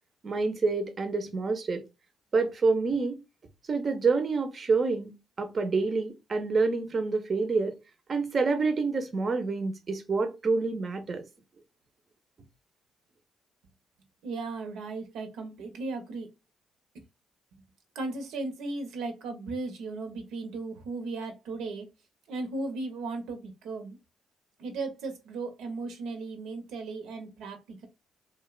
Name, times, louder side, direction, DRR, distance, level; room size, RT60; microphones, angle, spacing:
voice 1, 0.2-1.8 2.3-3.2 3.7-7.8 8.1-11.2, right 4 dB, 40° right, 0.5 m, -27 dB
voice 2, 14.2-16.3 17.9-21.9 22.3-24.0 24.6-27.9, right 3 dB, 85° right, 0.6 m, -36 dB
2.6 x 2.1 x 2.2 m
cardioid pair, 90°, 0 cm